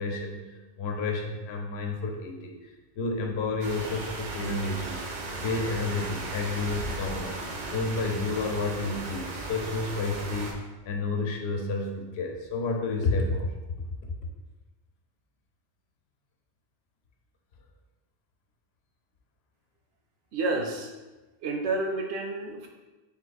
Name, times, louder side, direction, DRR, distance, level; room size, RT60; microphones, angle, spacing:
voice 1, 0.0-7.4 7.7-10.6 10.8-13.5, left 3 dB, 70° left, 2 dB, 0.9 m, -30 dB
sound 1, 3.6-10.5, right 2 dB, 55° right, 0.6 m, -36 dB
voice 2, 20.3-20.9 21.4-22.7, right 2 dB, 80° right, 2 dB, 0.9 m, -29 dB
3.6 x 2.5 x 4.0 m, 1.2 s
omnidirectional pair, 1.1 m